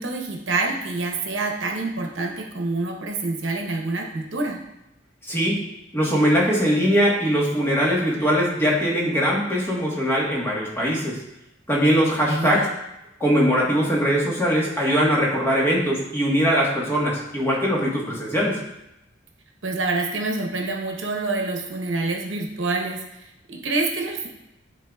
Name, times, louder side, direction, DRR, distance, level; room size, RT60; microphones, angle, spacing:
voice 1, 0.0-4.6 12.3-12.7 19.6-24.3, right 3 dB, 85° right, 1 dB, 1.0 m, -27 dB
voice 2, 5.3-5.6 5.9-11.2 11.7-12.6 13.2-18.6, equal, 15° left, -5 dB, 1.4 m, -21 dB
10.0 x 3.9 x 2.4 m, 0.89 s
head